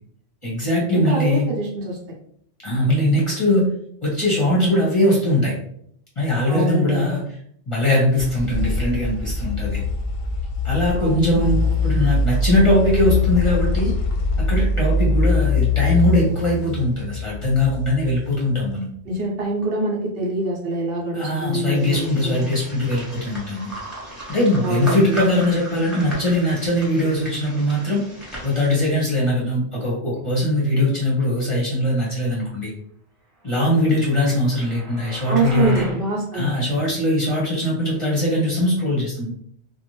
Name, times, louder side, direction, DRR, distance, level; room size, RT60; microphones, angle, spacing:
voice 1, 0.4-1.5 2.6-3.7 4.0-5.6 6.2-7.2 7.7-9.8 10.6-13.9 14.4-18.9 21.1-23.7 24.3-28.0 28.4-32.7 33.4-35.8 36.3-39.3, left 1 dB, 35° left, -5 dB, 0.7 m, -21 dB
voice 2, 1.0-2.0 6.5-7.2 10.9-11.5 19.0-22.6 24.6-25.2 35.3-36.5, right 2 dB, 60° right, -2 dB, 0.9 m, -25 dB
sound 1, 7.9-18.7, left 3 dB, 65° left, 0.7 m, -23 dB
sound 2, 21.7-29.0, equal, ahead, 0.9 m, -36 dB
sound 3, 33.8-36.0, right 2 dB, 35° right, 0.5 m, -36 dB
2.5 x 2.2 x 3.0 m, 0.67 s
omnidirectional pair, 1.1 m